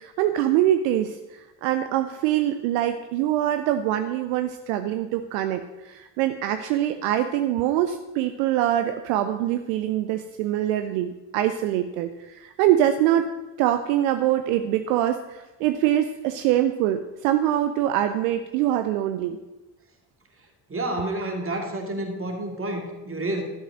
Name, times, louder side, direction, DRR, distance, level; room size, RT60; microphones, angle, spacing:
voice 1, 0.0-13.3 13.6-19.4, right 12 dB, 65° right, 9 dB, 0.7 m, -24 dB
voice 2, 20.7-23.4, right 1 dB, 25° right, 3 dB, 2.2 m, -29 dB
11.5 x 5.4 x 6.0 m, 1.1 s
figure-of-eight pair, 45°, 49 cm